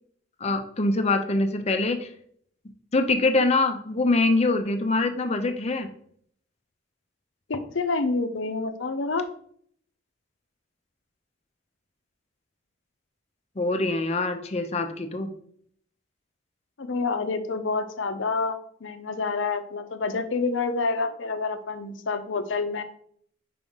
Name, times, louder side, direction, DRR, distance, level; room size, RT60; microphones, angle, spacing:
voice 1, 0.4-2.1 2.9-5.9 13.6-15.3, left 2 dB, 35° left, 7 dB, 0.5 m, -24 dB
voice 2, 7.5-9.3 16.8-22.8, left 4 dB, 75° left, 9 dB, 0.6 m, -28 dB
5.1 x 3.6 x 5.3 m, 0.62 s
head